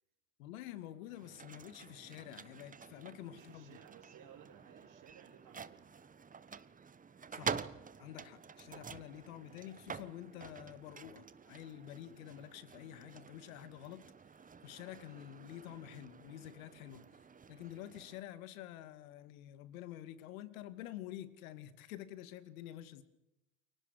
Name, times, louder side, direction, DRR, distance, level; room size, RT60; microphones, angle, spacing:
voice 1, 0.4-3.8 7.3-7.6 8.0-14.0 14.6-17.1 17.5-23.0, left 12 dB, 75° left, 13 dB, 2.3 m, -49 dB
sound 1, 1.1-18.2, right 6 dB, 20° right, 1.2 m, -48 dB
voice 2, 3.3-5.9, right 9 dB, 45° right, -2 dB, 4.0 m, -58 dB
28.5 x 24.0 x 6.5 m, 0.91 s
hypercardioid pair, 85°, 42 cm